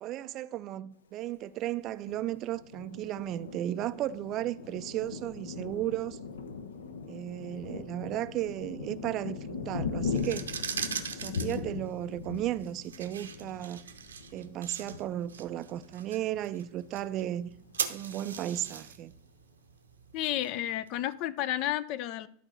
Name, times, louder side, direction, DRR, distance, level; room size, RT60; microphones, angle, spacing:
voice 1, 0.0-6.2 7.1-10.4 11.2-13.8 14.3-17.5 17.9-19.1, right 13 dB, 35° right, 0.4 m, -35 dB
Thunder, 2.0-16.4 16.9-17.0 17.3-17.9, left 5 dB, 65° left, 0.8 m, -40 dB
sound 1, 10.1-20.9, right 7 dB, 70° right, 0.8 m, -41 dB
voice 2, 20.1-22.3, left 12 dB, 40° left, 0.5 m, -31 dB
11.5 x 4.4 x 6.2 m
figure-of-eight pair, 90°, 0 cm